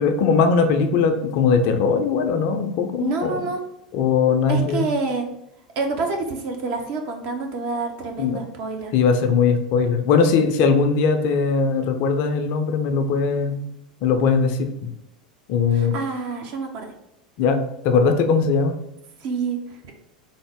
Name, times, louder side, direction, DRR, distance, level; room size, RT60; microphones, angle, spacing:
voice 1, 0.0-3.4 3.9-4.8 8.2-8.4 8.9-13.6 14.0-14.9 15.5-15.9 17.4-18.7, left 5 dB, 45° left, 6 dB, 0.4 m, -20 dB
voice 2, 3.0-3.6 4.5-5.3 5.8-8.9 15.7-16.9 19.2-19.6, right 4 dB, 45° right, 3 dB, 0.7 m, -27 dB
3.5 x 2.0 x 3.5 m, 0.83 s
figure-of-eight pair, 80°, 4 cm